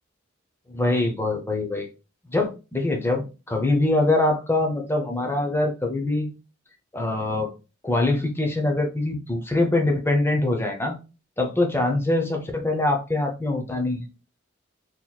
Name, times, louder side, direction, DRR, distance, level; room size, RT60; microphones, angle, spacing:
voice 1, 0.7-1.9 2.3-6.3 6.9-7.5 7.8-10.9 11.4-14.1, left 2 dB, 10° left, 0.6 m, -23 dB
4.0 x 3.0 x 2.3 m
head